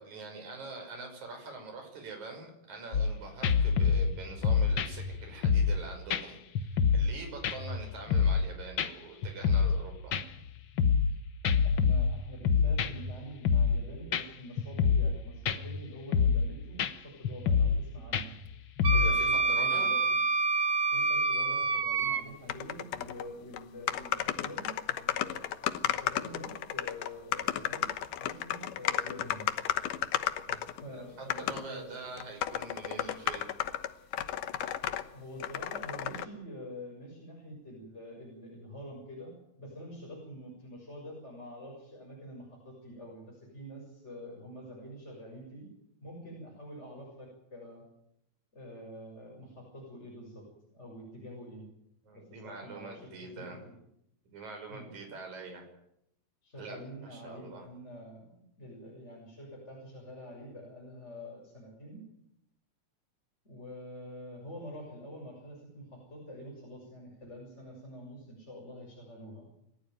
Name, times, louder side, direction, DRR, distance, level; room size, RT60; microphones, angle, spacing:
voice 1, 0.0-6.4 6.9-10.1 18.9-19.9 30.9-31.0 31.4-33.5 52.1-53.6 54.3-55.6 56.6-57.7, right 3 dB, 60° right, 3 dB, 7.1 m, -44 dB
sound 1, 2.9-3.1 3.4-5.8 6.1-6.2 6.5-7.1 7.4-8.5 8.8-8.9 9.2-9.8 10.1-11.1 11.4-13.1 13.4-13.8 14.1-14.2 14.6-15.2 15.5-15.8 16.1-16.5 16.8-16.9 17.2-17.8 18.1-19.2, left 6 dB, 55° left, 1.3 m, -26 dB
voice 2, 11.6-18.4 18.8-20.0 20.9-25.4 25.8-27.9 28.2-29.5 30.5-32.2 35.1-39.3 39.6-45.7 46.0-47.8 48.5-50.4 50.7-51.7 52.1-53.1 53.4-53.8 54.7-54.9 56.4-62.0 63.4-69.5, equal, 20° left, -2 dB, 7.0 m, -46 dB
Wind instrument woodwind instrument, 18.8-22.2, right 4 dB, 90° right, 0.6 m, -27 dB
sound 2, 22.5-23.3 23.5-23.6 23.9-30.8 31.3-31.6 32.2-35.0 35.4-36.2, left 11 dB, 75° left, 2.6 m, -33 dB
29.0 x 14.5 x 9.3 m, 0.78 s
omnidirectional pair, 3.8 m